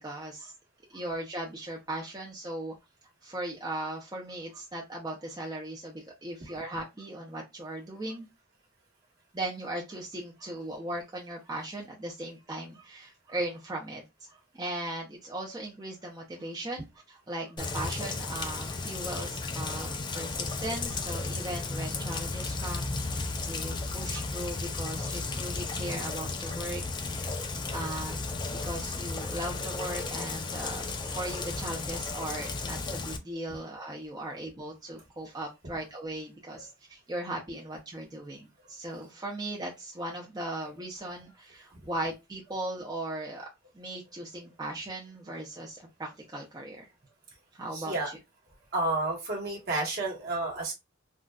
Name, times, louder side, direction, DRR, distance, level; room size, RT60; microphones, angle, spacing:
voice 1, 0.0-0.5 0.9-2.7 3.2-8.3 9.3-26.8 27.1-27.3 27.7-28.3 28.6-43.5 43.7-46.9 47.5-48.2, right 1 dB, 20° right, 0.6 m, -38 dB
Rain, 17.6-33.2, left 3 dB, 20° left, 0.4 m, -34 dB
voice 2, 47.7-48.1 48.7-50.7, right 2 dB, 50° right, 1.3 m, -30 dB
3.8 x 2.3 x 2.3 m
head